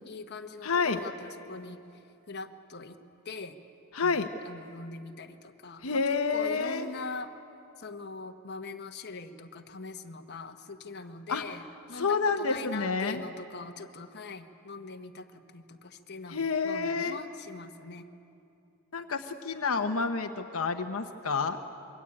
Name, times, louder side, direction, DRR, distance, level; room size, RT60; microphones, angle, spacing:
voice 1, 0.0-3.0 3.2-3.6 4.0-4.2 4.4-7.3 7.8-18.0, left 3 dB, 50° left, 5 dB, 1.3 m, -42 dB
voice 2, 0.6-1.0 3.9-4.3 5.8-6.9 11.3-11.4 12.0-13.2 16.3-17.2 18.9-21.6, left 4 dB, 80° left, 5 dB, 1.0 m, -29 dB
27.0 x 23.0 x 8.8 m, 2.7 s
head